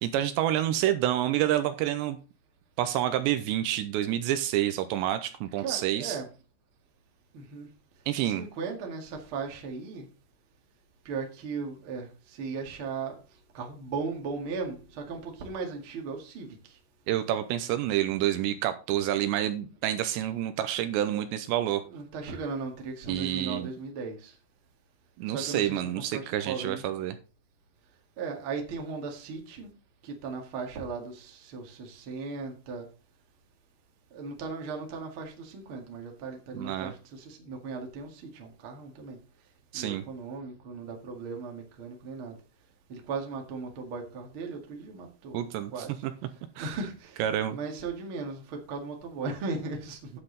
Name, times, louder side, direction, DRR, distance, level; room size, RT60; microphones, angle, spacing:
voice 1, 0.0-2.2 2.8-6.2 8.1-8.4 17.1-21.8 23.1-23.7 25.2-27.2 36.5-36.9 39.7-40.0 45.3-45.7 46.0-46.1 46.6-46.8 47.2-47.6, right 12 dB, 80° right, 2.8 m, -28 dB
voice 2, 5.6-6.3 7.3-7.7 8.2-10.1 11.0-13.2 13.5-16.8 21.9-24.3 25.3-26.8 28.2-29.7 30.0-32.9 34.1-39.2 39.7-42.3 42.9-45.4 45.7-45.9 46.6-47.2 47.5-50.1, right 4 dB, 45° right, 1.8 m, -37 dB
9.8 x 8.8 x 3.9 m
omnidirectional pair, 5.3 m